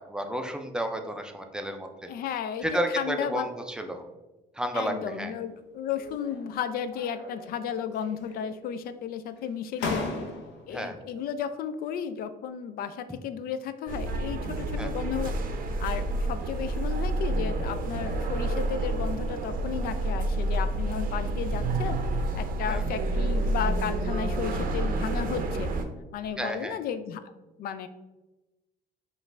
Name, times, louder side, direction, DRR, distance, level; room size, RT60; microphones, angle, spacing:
voice 1, 0.0-2.1 2.6-4.0 4.6-5.3 10.7-11.0 14.8-14.9 22.7-22.8 26.4-26.8, right 1 dB, 5° right, 5 dB, 0.4 m, -32 dB
voice 2, 2.1-3.5 4.7-10.0 10.7-15.3 15.8-25.7 26.1-27.3 27.6-27.9, left 8 dB, 60° left, 11 dB, 0.4 m, -34 dB
sound 1, 5.9-6.5 6.9-7.7 8.0-8.7 9.4-9.5 9.8-10.7, left 3 dB, 90° left, 0.8 m, -36 dB
sound 2, 13.9-25.8, right 2 dB, 55° right, 0.6 m, -29 dB
5.0 x 2.5 x 3.3 m, 1.1 s
cardioid pair, 110°, 17 cm